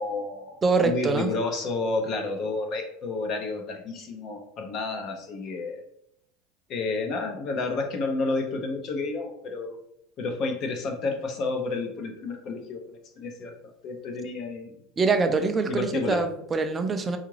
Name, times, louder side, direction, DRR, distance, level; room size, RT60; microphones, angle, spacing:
voice 1, 0.0-5.8 6.7-9.8 10.2-12.8 13.2-13.6 13.8-14.8 15.7-16.2, left 3 dB, 40° left, 4 dB, 0.5 m, -30 dB
voice 2, 0.6-1.3 15.0-17.2, right 4 dB, 20° right, 6 dB, 0.4 m, -24 dB
3.7 x 2.4 x 3.1 m, 0.73 s
supercardioid pair, 140°, 0 cm